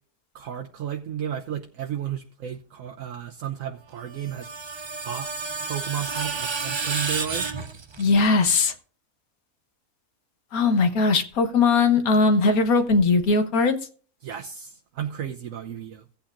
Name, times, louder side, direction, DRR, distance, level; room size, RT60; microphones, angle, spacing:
voice 1, 0.3-4.5 5.1-5.3 5.6-7.5 14.2-16.0, right 9 dB, 70° right, 3 dB, 1.1 m, -33 dB
Screech, 4.0-8.3, right 4 dB, 50° right, 0.3 m, -31 dB
voice 2, 8.0-8.7 10.5-13.8, left 4 dB, 75° left, 7 dB, 1.6 m, -20 dB
16.5 x 8.7 x 2.6 m, 0.40 s
omnidirectional pair, 1.5 m